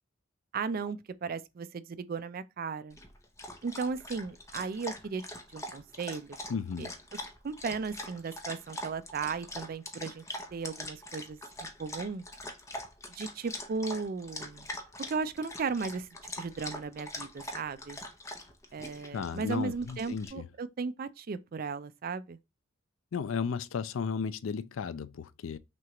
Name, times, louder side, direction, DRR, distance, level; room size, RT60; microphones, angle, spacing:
voice 1, 0.5-3.0 3.6-5.2 5.5-6.4 6.8-6.9 7.4-10.2 10.5-12.2 13.1-14.7 15.1-18.0 18.7-22.4, right 5 dB, 45° right, 0.4 m, -36 dB
Dog, 2.9-20.3, left 1 dB, 15° left, 0.7 m, -43 dB
voice 2, 6.5-6.9 19.1-20.4 23.1-25.6, left 6 dB, 80° left, 0.4 m, -34 dB
6.0 x 2.4 x 2.9 m
head